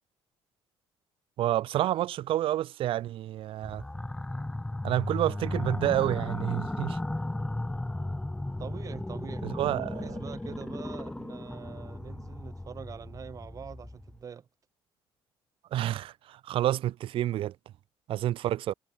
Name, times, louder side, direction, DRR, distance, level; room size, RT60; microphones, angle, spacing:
voice 1, 1.4-3.8 4.8-7.0 9.4-10.2 15.7-17.5 18.1-18.7, right 13 dB, 70° right, 3.0 m, -29 dB
sound 1, 3.6-14.2, left 1 dB, 10° left, 2.7 m, -35 dB
voice 2, 8.6-14.5, right 7 dB, 35° right, 2.8 m, -44 dB
cardioid pair, 145°, 10 cm